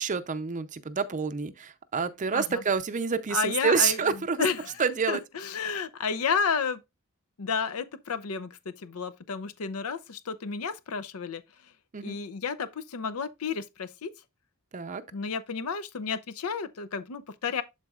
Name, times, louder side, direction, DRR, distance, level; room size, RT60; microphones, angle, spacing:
voice 1, 0.0-4.4 4.8-5.2 11.9-12.2 14.7-15.0, right 6 dB, 35° right, 0.5 m, -28 dB
voice 2, 3.3-4.0 4.4-4.8 5.1-6.8 7.4-11.4 12.0-14.1 15.1-17.6, left 5 dB, 85° left, 0.6 m, -31 dB
12.0 x 4.0 x 2.4 m
head